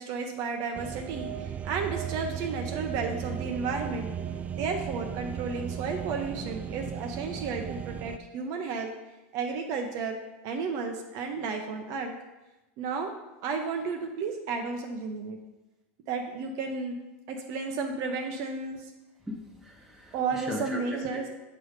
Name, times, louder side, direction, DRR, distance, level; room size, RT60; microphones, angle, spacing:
voice 1, 0.0-4.1 4.6-8.9 9.3-10.2 10.4-12.1 12.8-13.1 13.4-15.4 16.1-17.0 17.3-18.9 20.1-21.3, right 4 dB, 55° right, 4 dB, 0.7 m, -32 dB
sound 1, 0.7-8.2, right 8 dB, 20° right, 0.3 m, -36 dB
voice 2, 19.3-21.3, left 1 dB, 5° right, -2 dB, 1.3 m, -39 dB
7.9 x 3.2 x 5.0 m, 1.0 s
supercardioid pair, 115°, 7 cm